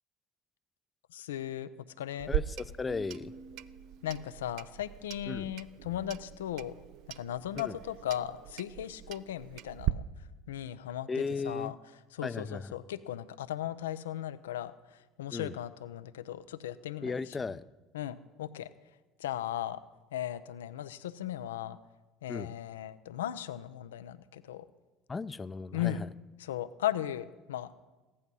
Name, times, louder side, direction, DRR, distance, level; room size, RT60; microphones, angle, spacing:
voice 1, 1.1-1.7 2.0-2.3 4.0-6.7 7.2-10.0 10.5-11.1 11.4-11.8 12.1-14.7 15.2-17.1 17.9-18.7 19.2-19.8 20.1-21.8 22.2-24.7 25.7-26.0 26.4-27.7, left 12 dB, 90° left, 14 dB, 0.5 m, -37 dB
Clock, 2.2-9.9, right 15 dB, 65° right, 0.5 m, -39 dB
voice 2, 2.3-3.3 5.3-5.5 7.6-7.8 11.1-11.7 12.2-12.7 15.3-15.6 17.0-17.7 22.3-22.5 25.1-26.1, left 4 dB, 25° left, 17 dB, 0.5 m, -36 dB
Keyboard (musical), 2.8-4.6, right 3 dB, 80° right, 5.9 m, -51 dB
15.5 x 11.0 x 5.5 m, 1.2 s
hypercardioid pair, 80°, 0 cm